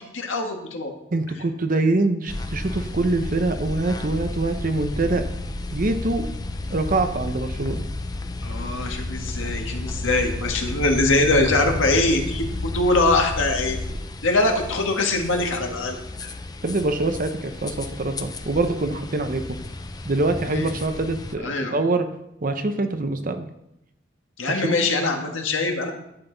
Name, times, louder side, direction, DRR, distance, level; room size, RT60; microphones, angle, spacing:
voice 1, 0.1-0.9 8.4-13.8 14.2-16.3 20.5-20.7 21.4-21.7 24.4-25.9, left 2 dB, 80° left, 2 dB, 1.6 m, -23 dB
voice 2, 1.1-5.2 5.7-6.3 6.7-7.9 16.6-19.6 20.1-22.1 22.4-23.5 24.6-24.8, right 2 dB, 45° right, 8 dB, 0.7 m, -24 dB
sound 1, 2.3-21.3, left 2 dB, 20° left, 0.5 m, -32 dB
11.5 x 7.9 x 3.9 m, 0.83 s
head